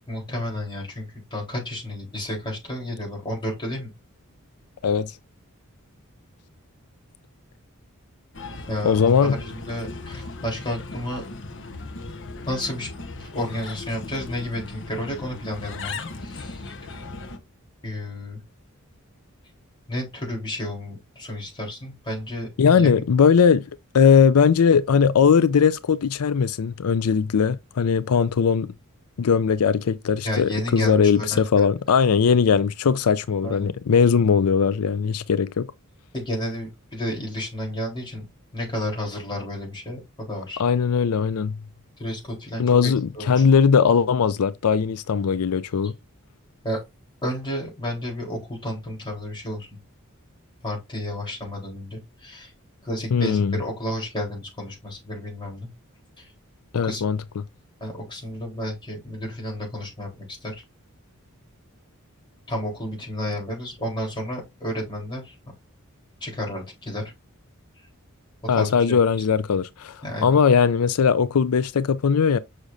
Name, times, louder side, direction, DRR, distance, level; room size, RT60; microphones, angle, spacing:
voice 1, 0.1-3.9 8.7-9.1 9.4-11.2 12.5-12.9 13.2-16.6 17.8-18.4 19.9-22.9 30.2-31.7 33.4-33.7 36.1-38.2 38.5-40.6 42.0-43.5 46.6-46.8 47.2-49.7 50.6-52.5 52.8-55.7 56.2-56.3 56.8-57.0 57.8-60.6 62.5-65.3 66.2-67.1 68.5-69.0 70.0-70.2, left 1 dB, 20° left, 3.9 m, -31 dB
Bird, 8.3-17.4, left 3 dB, 60° left, 1.2 m, -37 dB
voice 2, 8.8-9.4 22.6-23.6 23.9-28.7 29.2-35.7 40.6-41.5 42.6-45.9 53.1-53.6 56.7-57.2 68.5-72.4, left 6 dB, 85° left, 0.5 m, -19 dB
6.5 x 6.2 x 2.6 m
head